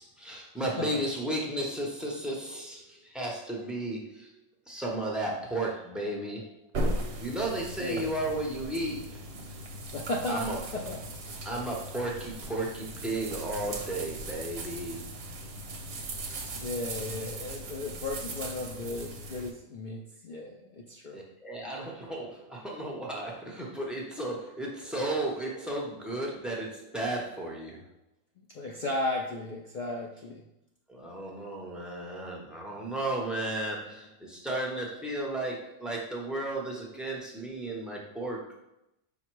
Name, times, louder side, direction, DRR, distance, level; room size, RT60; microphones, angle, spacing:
voice 1, 0.0-4.3 4.7-6.6 7.2-9.2 10.3-10.6 11.4-15.1 21.1-27.9 30.9-38.6, right 1 dB, ahead, -4 dB, 0.5 m, -34 dB
sound 1, 6.7-19.5, right 1 dB, 55° right, 0.8 m, -38 dB
voice 2, 9.9-11.0 16.5-21.2 28.5-30.4, left 2 dB, 70° left, -1 dB, 0.4 m, -35 dB
5.4 x 2.1 x 4.5 m, 0.87 s
omnidirectional pair, 1.4 m